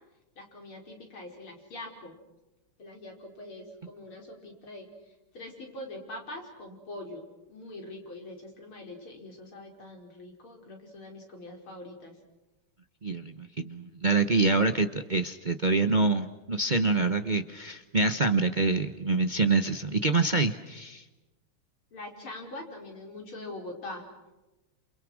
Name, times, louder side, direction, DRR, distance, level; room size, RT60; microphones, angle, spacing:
voice 1, 0.4-2.1 2.8-4.9 5.3-7.2 7.5-12.1 21.9-24.0, left 2 dB, 70° left, 1 dB, 5.9 m, -43 dB
voice 2, 13.0-21.0, right 3 dB, 50° right, 8 dB, 0.5 m, -26 dB
28.5 x 28.5 x 6.3 m, 1.1 s
omnidirectional pair, 2.4 m